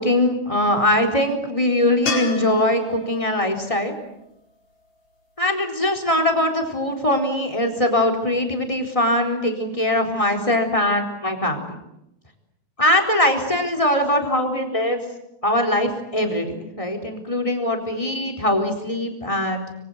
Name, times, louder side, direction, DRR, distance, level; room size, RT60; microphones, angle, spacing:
voice 1, 0.0-3.9 5.4-11.7 12.8-15.0 15.4-19.7, left 1 dB, 10° left, 2 dB, 4.0 m, -21 dB
sound 1, 2.1-5.3 8.6-8.7, left 5 dB, 70° left, 6.3 m, -33 dB
26.0 x 24.5 x 8.1 m, 0.85 s
omnidirectional pair, 3.4 m